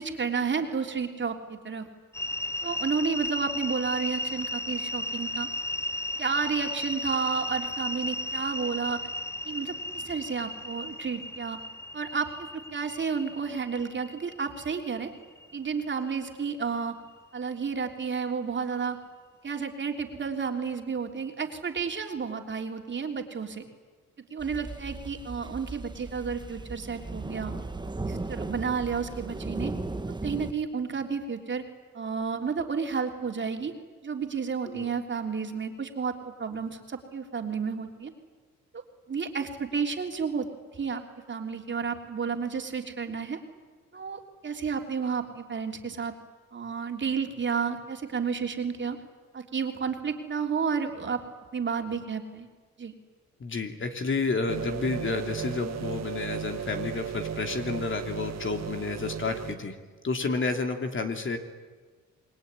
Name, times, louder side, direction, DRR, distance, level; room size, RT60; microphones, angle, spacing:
voice 1, 0.0-1.8 2.6-5.5 6.2-9.0 9.4-11.6 11.9-15.1 15.5-16.9 17.3-19.0 19.4-23.6 24.3-27.5 28.0-29.7 30.2-31.7 31.9-33.7 34.0-38.1 38.7-40.5 40.7-41.0 41.3-43.4 43.9-46.1 46.5-49.0 49.3-51.2 51.5-52.5 52.8-52.9, right 5 dB, 40° right, 4 dB, 3.4 m, -31 dB
sound 1, 2.1-16.3, left 1 dB, 10° left, 0.9 m, -35 dB
sound 2, 24.4-30.5, right 2 dB, 15° right, 1.5 m, -36 dB
voice 2, 53.4-59.8 60.0-61.4, left 4 dB, 40° left, 5 dB, 3.1 m, -30 dB
sound 3, 54.5-59.6, right 9 dB, 60° right, 2.1 m, -36 dB
27.5 x 21.0 x 9.9 m, 1.4 s
cardioid pair, 90°, 30 cm